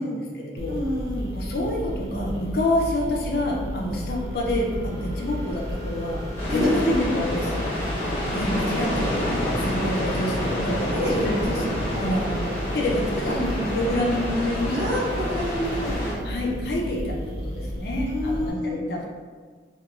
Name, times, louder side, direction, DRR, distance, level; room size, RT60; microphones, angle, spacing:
voice 1, 0.0-0.8 1.3-6.2 6.5-7.7 8.3-12.3 12.7-14.9 16.2-17.2 17.4-19.0, left 1 dB, 55° left, -2 dB, 0.4 m, -27 dB
sound 1, 0.6-18.5, equal, 55° right, 0.4 m, -33 dB
voice 2, 0.7-1.4 6.5-7.0 10.9-12.5 13.2-13.4 14.7-16.4 18.1-18.8, left 1 dB, 70° right, -5 dB, 0.8 m, -28 dB
sound 2, 0.8-6.9, equal, 35° right, 1.3 m, -43 dB
sound 3, 6.4-16.1, left 1 dB, 10° left, 0.8 m, -29 dB
2.9 x 2.3 x 2.4 m, 1.5 s
head